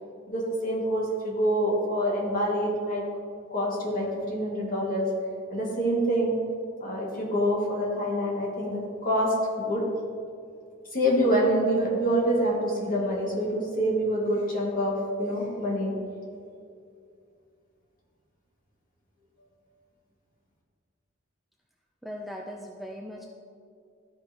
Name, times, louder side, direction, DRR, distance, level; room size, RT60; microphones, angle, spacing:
voice 1, 0.3-3.0 3.5-5.1 5.5-6.4 6.8-9.9 10.9-15.9, equal, 45° left, -4 dB, 1.9 m, -26 dB
voice 2, 22.0-23.3, equal, ahead, -1 dB, 0.4 m, -39 dB
13.5 x 5.3 x 2.9 m, 2.4 s
head